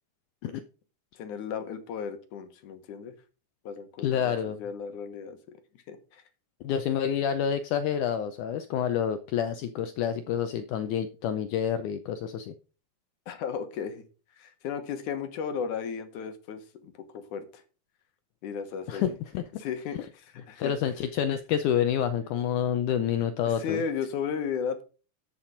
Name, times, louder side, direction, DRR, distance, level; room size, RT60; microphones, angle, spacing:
voice 1, 1.2-3.1 3.7-5.6 5.9-6.2 13.3-14.0 14.4-17.6 18.4-19.0 19.6-20.7 23.5-24.8, left 6 dB, 65° left, 8 dB, 2.4 m, -35 dB
voice 2, 4.0-4.6 6.6-12.5 18.9-19.4 20.6-23.8, left 9 dB, 80° left, 10 dB, 1.8 m, -28 dB
12.5 x 5.9 x 5.0 m, 0.35 s
omnidirectional pair, 4.3 m